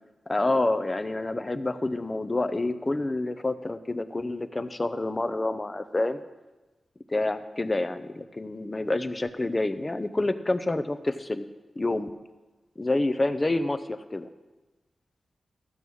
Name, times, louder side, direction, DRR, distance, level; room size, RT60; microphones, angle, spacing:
voice 1, 0.3-6.2 7.1-11.4 11.8-12.1 12.8-14.3, left 2 dB, 25° left, 11 dB, 0.6 m, -28 dB
14.0 x 5.5 x 6.3 m, 1.2 s
wide cardioid pair, 105°, 0 cm